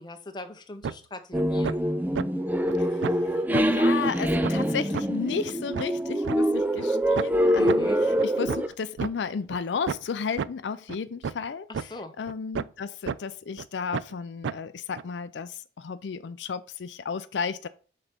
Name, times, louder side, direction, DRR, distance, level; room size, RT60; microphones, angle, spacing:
voice 1, 0.0-1.8 7.6-8.0 11.7-12.1, left 2 dB, 25° left, 0.7 m, -41 dB
sound 1, 0.8-0.9 1.3-1.7 2.1-2.2 2.7-2.8 3.0-3.2 3.5-3.6 4.0-4.1 4.4-4.5 4.9-5.0 5.4-6.4 6.8-6.9 7.2-7.3 7.7-7.8 8.2-9.1 9.5-9.6 9.9-10.0 10.4-10.5 10.9-11.0 11.2-11.4 11.7-11.9 12.3-12.8 13.1-13.2 13.6-13.7 13.9-14.1 14.4-14.5 14.9-15.0, right 6 dB, 85° right, 0.3 m, -31 dB
sound 2, 1.3-8.7, equal, 10° right, 0.4 m, -25 dB
voice 2, 3.5-11.7 12.2-17.7, left 6 dB, 80° left, 0.4 m, -33 dB
6.0 x 4.2 x 5.1 m
head